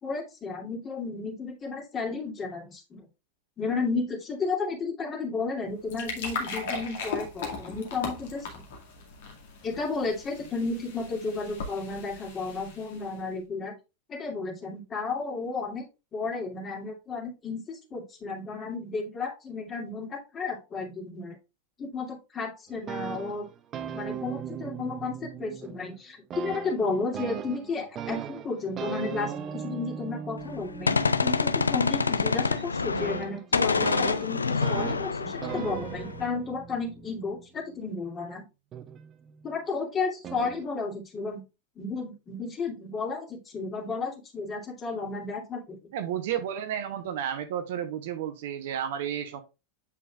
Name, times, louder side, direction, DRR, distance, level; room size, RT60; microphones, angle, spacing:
voice 1, 0.0-3.0 3.6-8.5 9.6-13.7 14.1-15.9 16.1-21.4 21.8-23.5 23.9-38.4 39.4-41.4 41.8-45.8, left 4 dB, 25° left, 0 dB, 2.5 m, -33 dB
sound 1, 5.6-13.2, left 4 dB, 55° left, 2.0 m, -38 dB
sound 2, 22.7-26.0 26.3-37.9 38.7-39.5 40.2-40.6, right 8 dB, 30° right, 0.7 m, -39 dB
Gunshot gunfire, 30.4-33.3 33.5-36.3, left 4 dB, 75° left, 0.4 m, -27 dB
voice 2, 45.9-49.4, right 9 dB, 55° right, 8 dB, 1.0 m, -32 dB
8.2 x 5.1 x 2.4 m, 0.28 s
figure-of-eight pair, 90°, 0 cm